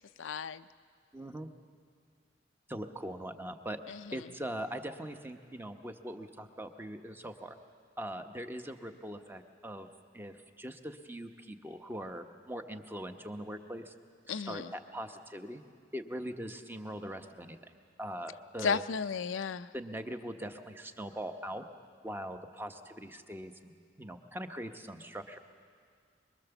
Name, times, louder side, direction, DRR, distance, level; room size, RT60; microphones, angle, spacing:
voice 1, 0.2-0.6 3.9-4.2 14.3-14.7 18.6-19.7, left 5 dB, 80° left, 12 dB, 0.5 m, -34 dB
voice 2, 1.1-1.5 2.7-7.6 8.0-13.9 14.3-15.6 15.9-17.7 18.0-18.8 19.7-21.7 22.0-23.7 24.0-25.4, equal, 10° right, 7 dB, 0.9 m, -41 dB
24.0 x 22.5 x 7.0 m, 2.1 s
head